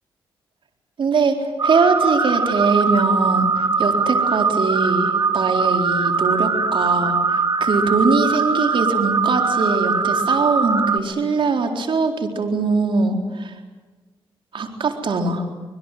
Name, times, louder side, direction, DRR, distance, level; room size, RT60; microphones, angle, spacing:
voice 1, 1.0-13.5 14.5-15.5, right 4 dB, 65° right, 3 dB, 4.2 m, -22 dB
sound 1, 1.6-11.0, right 4 dB, 45° right, 2.3 m, -21 dB
26.0 x 21.5 x 9.3 m, 1.3 s
cardioid pair, 65°, 9 cm